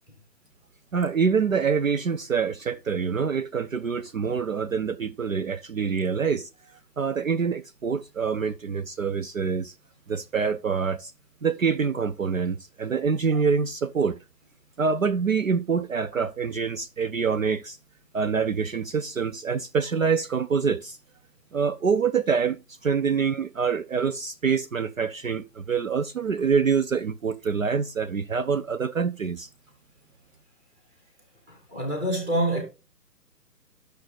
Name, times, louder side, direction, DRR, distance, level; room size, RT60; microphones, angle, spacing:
voice 1, 0.9-6.5 7.0-9.7 10.1-11.1 11.4-14.2 14.8-17.8 18.1-21.0 21.5-29.5, right 6 dB, 55° right, 0.5 m, -26 dB
voice 2, 31.5-32.6, right 1 dB, 5° right, 1.1 m, -26 dB
11.5 x 6.4 x 3.3 m
figure-of-eight pair, 140°, 49 cm